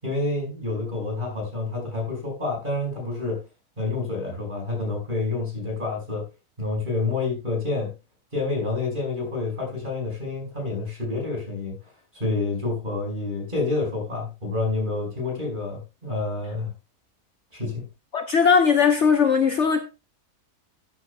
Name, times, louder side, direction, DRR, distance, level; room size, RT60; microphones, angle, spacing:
voice 1, 0.0-3.4 3.8-6.3 6.6-8.0 8.3-11.8 12.1-16.7 17.5-17.9, left 3 dB, 30° right, 5.6 m, -28 dB
voice 2, 18.1-19.8, left 6 dB, 50° left, 1.1 m, -19 dB
14.5 x 9.4 x 2.3 m
omnidirectional pair, 1.7 m